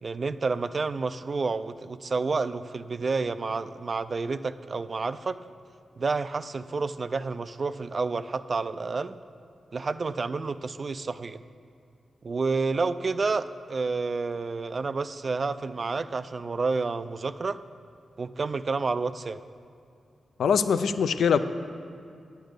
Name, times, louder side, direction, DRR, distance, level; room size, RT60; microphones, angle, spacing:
voice 1, 0.0-5.4 6.0-9.1 9.7-11.4 12.2-17.6 18.2-19.4, right 4 dB, 45° right, 13 dB, 0.3 m, -29 dB
voice 2, 20.4-21.4, left 6 dB, 90° left, 10 dB, 0.4 m, -22 dB
10.0 x 8.1 x 5.1 m, 2.4 s
cardioid pair, 90°, 0 cm